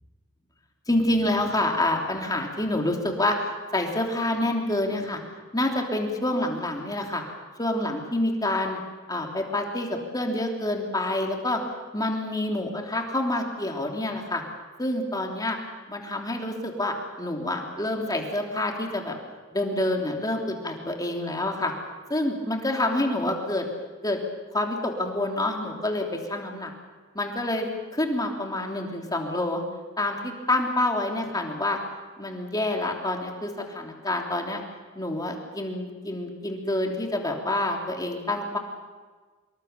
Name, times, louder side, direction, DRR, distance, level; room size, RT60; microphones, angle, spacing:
voice 1, 0.9-5.2 5.5-7.2 7.6-8.8 9.1-11.6 11.9-14.4 14.8-15.6 15.9-19.2 19.5-21.7 22.1-23.7 24.0-24.2 24.5-26.7 27.1-27.7 27.9-29.6 30.0-31.8 32.2-34.6 34.9-38.6, left 1 dB, 20° left, 2 dB, 3.2 m, -27 dB
25.5 x 22.5 x 6.9 m, 1.4 s
head